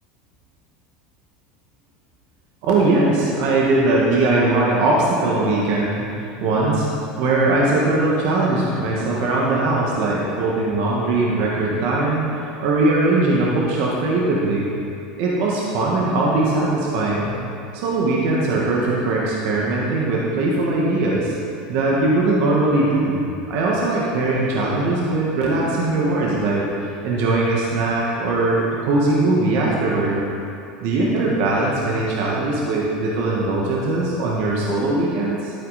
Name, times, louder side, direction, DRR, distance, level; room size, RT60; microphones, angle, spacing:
voice 1, 2.6-6.9 7.2-14.6 15.2-17.4 17.7-21.3 21.7-30.2 30.8-35.5, right 2 dB, 65° right, -4 dB, 1.7 m, -20 dB
12.0 x 8.7 x 4.3 m, 2.6 s
supercardioid pair, 110°, 4 cm